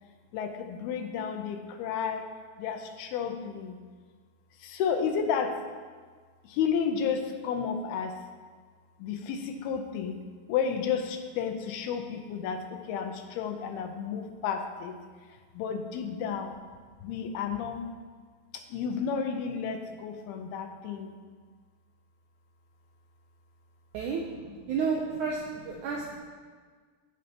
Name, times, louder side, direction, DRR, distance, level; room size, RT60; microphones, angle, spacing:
voice 1, 0.3-2.3 2.6-3.8 4.6-5.6 6.4-8.2 9.0-10.2 10.5-15.0 15.3-16.5 17.0-17.9 18.5-21.2, left 6 dB, 85° left, 6 dB, 2.7 m, -32 dB
voice 2, 24.7-26.2, right 5 dB, 85° right, -2 dB, 1.7 m, -31 dB
14.5 x 5.4 x 2.9 m, 1.6 s
omnidirectional pair, 4.4 m